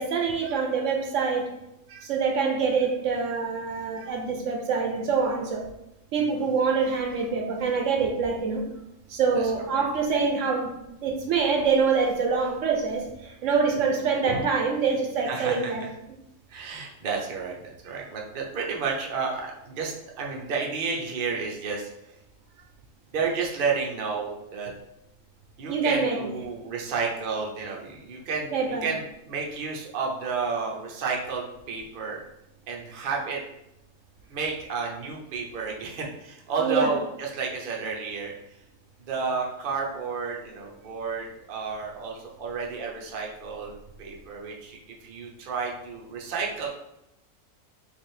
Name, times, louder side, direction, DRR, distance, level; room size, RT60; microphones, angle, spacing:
voice 1, 0.0-1.5 2.0-5.6 6.1-8.6 9.1-10.7 11.0-15.8 25.7-26.2 28.5-28.9 36.6-36.9, right 5 dB, 70° right, 2 dB, 0.9 m, -25 dB
voice 2, 9.4-9.8 15.2-15.9 16.5-17.6 17.8-21.9 23.1-24.7 25.6-32.2 32.7-33.4 34.3-38.3 39.1-43.7 44.0-46.7, right 5 dB, 50° right, -1 dB, 0.7 m, -31 dB
3.3 x 2.7 x 4.3 m, 0.87 s
omnidirectional pair, 1.4 m